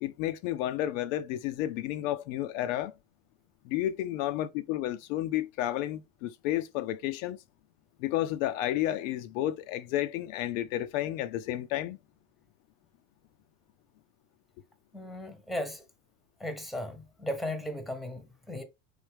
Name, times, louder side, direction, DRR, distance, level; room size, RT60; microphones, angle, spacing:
voice 1, 0.0-2.9 3.7-7.4 8.0-12.0, left 13 dB, 65° left, 0.5 m, -31 dB
voice 2, 14.9-15.8 16.4-18.6, left 1 dB, ahead, 0.8 m, -36 dB
4.3 x 3.3 x 3.3 m
hypercardioid pair, 95°, 41 cm